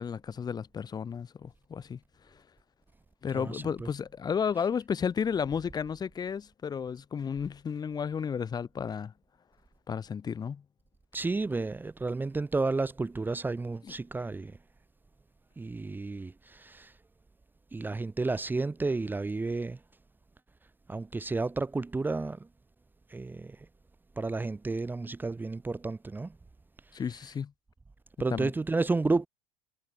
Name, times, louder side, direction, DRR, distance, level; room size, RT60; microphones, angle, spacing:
voice 1, 0.0-2.0 3.2-9.1 9.9-10.6 26.9-27.5 28.3-28.5, left 7 dB, 30° left, 1.9 m, -33 dB
voice 2, 3.3-3.9 11.1-14.6 15.6-16.9 17.7-19.8 20.9-22.5 23.1-23.7 24.2-26.4 28.2-29.3, right 3 dB, 15° right, 1.4 m, -31 dB
hypercardioid pair, 80°, 13 cm